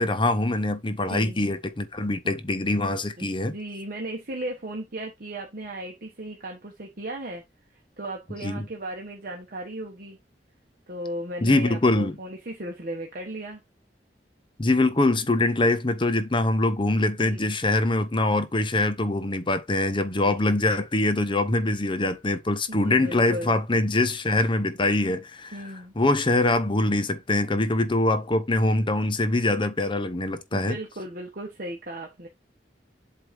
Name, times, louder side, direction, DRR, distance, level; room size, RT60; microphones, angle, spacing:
voice 1, 0.0-3.5 8.4-8.7 11.4-12.2 14.6-25.6 26.0-30.8, left 2 dB, 30° left, 0.8 m, -23 dB
voice 2, 1.1-1.4 3.2-7.4 7.7-10.2 10.9-13.6 17.2-17.5 20.2-20.4 22.7-23.5 25.5-25.9 30.5-32.3, right 1 dB, 55° right, 1.2 m, -36 dB
8.0 x 2.7 x 5.1 m
head